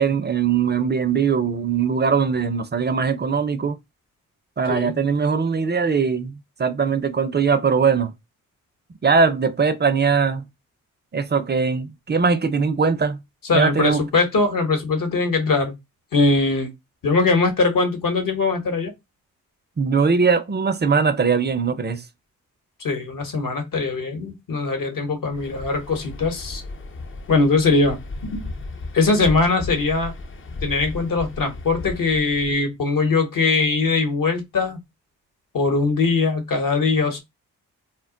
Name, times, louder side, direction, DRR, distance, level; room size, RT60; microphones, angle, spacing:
voice 1, 0.0-3.8 4.6-8.1 9.0-10.4 11.1-13.2 13.5-14.0 19.8-22.0, right 5 dB, 25° right, 0.5 m, -20 dB
voice 2, 4.7-5.0 13.4-15.7 16.1-16.7 17.0-18.9 22.8-26.6 27.3-28.5 28.9-30.1 30.6-34.8 35.5-37.2, left 3 dB, 60° left, 1.0 m, -21 dB
Waves surf, 25.3-32.6, left 2 dB, 35° left, 0.5 m, -35 dB
2.2 x 2.1 x 3.6 m
supercardioid pair, 45°, 38 cm